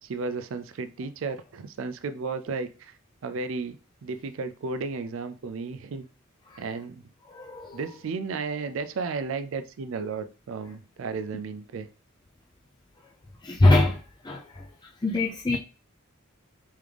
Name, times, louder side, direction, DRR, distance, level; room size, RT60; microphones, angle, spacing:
voice 1, 0.0-2.9 3.2-6.1 6.6-7.0 7.7-11.9, right 4 dB, 60° right, 0.4 m, -33 dB
voice 2, 7.3-7.8 13.4-14.7 15.0-15.6, left 2 dB, 20° left, 0.4 m, -23 dB
3.6 x 3.4 x 3.3 m
head